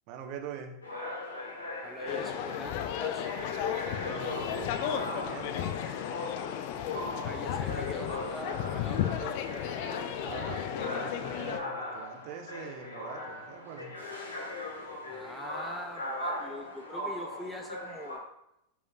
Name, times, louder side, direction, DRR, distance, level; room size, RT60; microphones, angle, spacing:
voice 1, 0.1-0.7 3.8-5.9 10.1-13.9, right 7 dB, 40° right, 3 dB, 1.2 m, -43 dB
sound 1, 0.8-18.2, left 1 dB, 75° left, 2.1 m, -39 dB
voice 2, 1.8-3.3 7.1-9.4 15.1-18.2, equal, 5° left, 4 dB, 0.6 m, -43 dB
sound 2, 2.1-11.6, left 10 dB, 50° left, 0.6 m, -34 dB
12.0 x 5.0 x 2.5 m, 0.80 s
figure-of-eight pair, 90°, 0 cm